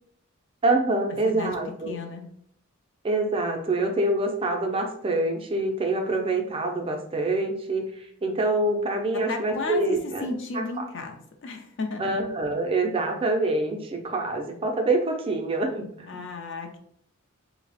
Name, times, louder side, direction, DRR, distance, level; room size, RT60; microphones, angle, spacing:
voice 1, 0.6-2.0 3.0-10.3 10.8-10.9 12.0-16.1, right 2 dB, 25° right, 3 dB, 0.4 m, -26 dB
voice 2, 1.9-2.3 9.3-12.2 16.1-16.8, left 3 dB, 60° left, 4 dB, 0.5 m, -33 dB
3.2 x 2.0 x 3.9 m, 0.69 s
head